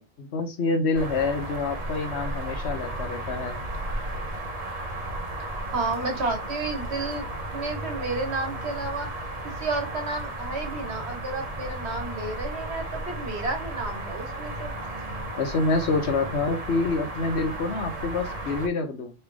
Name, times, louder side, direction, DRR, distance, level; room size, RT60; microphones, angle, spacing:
voice 1, 0.2-3.6 15.4-19.1, left 3 dB, 90° left, 6 dB, 1.2 m, -27 dB
sound 1, 0.9-18.7, right 1 dB, 40° right, 0.9 m, -34 dB
voice 2, 5.4-7.3 7.5-9.1 9.6-14.7, right 3 dB, 85° right, 5 dB, 1.6 m, -31 dB
3.3 x 3.1 x 4.7 m, 0.25 s
omnidirectional pair, 1.1 m